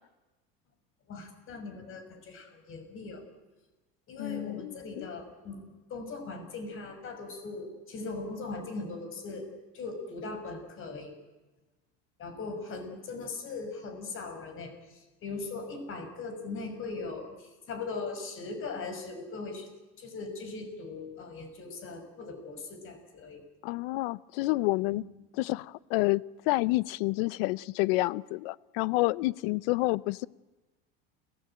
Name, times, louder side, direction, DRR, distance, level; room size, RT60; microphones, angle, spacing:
voice 1, 1.1-3.2 4.1-11.1 12.2-19.7 20.0-23.4 24.9-25.0, left 3 dB, 45° left, 7 dB, 5.9 m, -39 dB
voice 2, 4.2-5.1 23.6-25.0 25.4-30.3, left 21 dB, 80° left, 21 dB, 0.7 m, -29 dB
29.0 x 16.0 x 9.0 m, 1.1 s
supercardioid pair, 115°, 29 cm